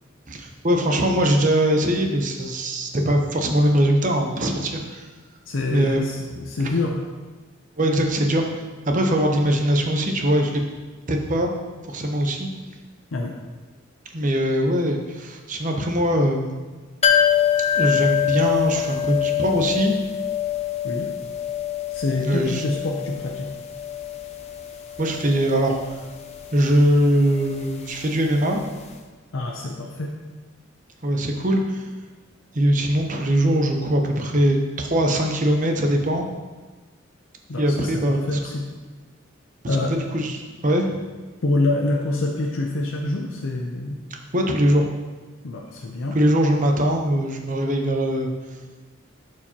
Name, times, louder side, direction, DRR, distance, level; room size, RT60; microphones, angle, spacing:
voice 1, 0.3-5.1 5.7-6.0 6.3-6.7 7.8-8.4 8.9-10.6 11.1-11.5 11.9-12.5 14.1-16.6 17.7-19.9 22.2-22.6 25.0-26.0 26.5-28.6 31.0-31.9 32.5-36.3 37.6-38.4 39.9-41.0 44.3-44.9 46.1-48.3, right 1 dB, 40° right, 2 dB, 0.8 m, -21 dB
voice 2, 5.5-6.2 6.5-7.0 13.1-13.4 20.8-21.1 21.9-23.5 29.3-30.1 37.5-38.7 39.7-40.0 41.4-44.0 45.4-46.2, left 2 dB, 75° left, 0 dB, 0.6 m, -26 dB
sound 1, 17.0-28.6 28.9-29.0, left 9 dB, 35° left, 0.6 m, -25 dB
11.0 x 4.8 x 2.9 m, 1.3 s
head